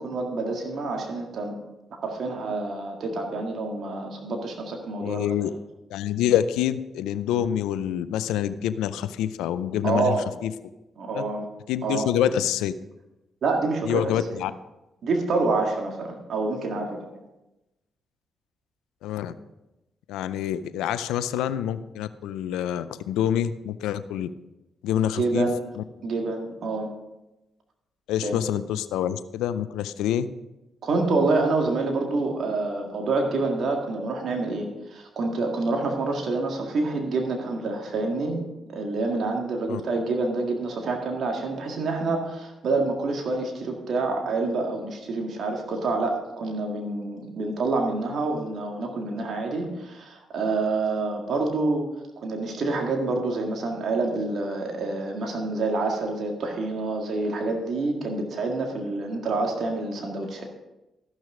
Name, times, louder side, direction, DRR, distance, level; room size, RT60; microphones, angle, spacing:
voice 1, 0.0-1.6 2.0-5.3 9.8-10.2 11.0-11.5 11.8-12.1 13.4-14.1 15.0-17.0 25.1-25.6 26.0-26.9 28.2-28.4 30.8-38.4 38.7-51.8 52.2-60.4, right 3 dB, 65° right, 2 dB, 1.8 m, -27 dB
voice 2, 5.0-5.5 5.9-10.1 10.4-10.5 11.1-11.2 11.7-12.7 13.8-14.5 19.0-19.3 20.1-24.3 24.8-25.5 25.8-25.9 28.1-30.3 39.7-39.8, left 10 dB, 85° left, 13 dB, 0.5 m, -26 dB
14.0 x 6.3 x 5.0 m, 0.97 s
supercardioid pair, 55°, 0 cm